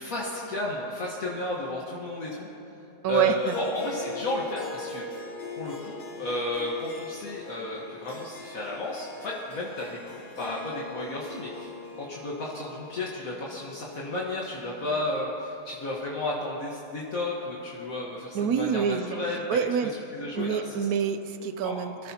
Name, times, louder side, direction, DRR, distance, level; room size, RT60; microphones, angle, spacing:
voice 1, 0.0-2.5 3.1-5.0 5.6-11.7 12.0-19.4 20.1-20.6 21.6-21.8, left 2 dB, 65° left, -4 dB, 1.8 m, -33 dB
voice 2, 3.0-3.6 18.3-19.2 19.5-19.9 20.3-22.1, right 7 dB, 80° right, 9 dB, 1.2 m, -26 dB
Harp, 3.4-16.0, left 2 dB, 35° left, 1.2 m, -41 dB
24.0 x 13.0 x 2.8 m, 3.0 s
omnidirectional pair, 1.6 m